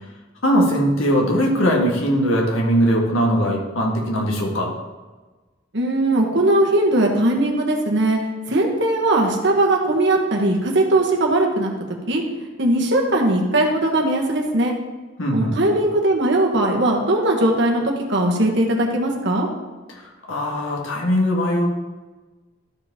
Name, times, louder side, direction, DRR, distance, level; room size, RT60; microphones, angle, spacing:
voice 1, 0.4-4.7 15.2-15.6 20.3-21.7, equal, 90° left, -1 dB, 1.7 m, -20 dB
voice 2, 5.7-8.2 8.5-12.2 12.6-14.7 15.3-19.5, right 1 dB, 60° right, 0 dB, 1.4 m, -19 dB
13.0 x 4.9 x 3.7 m, 1.2 s
head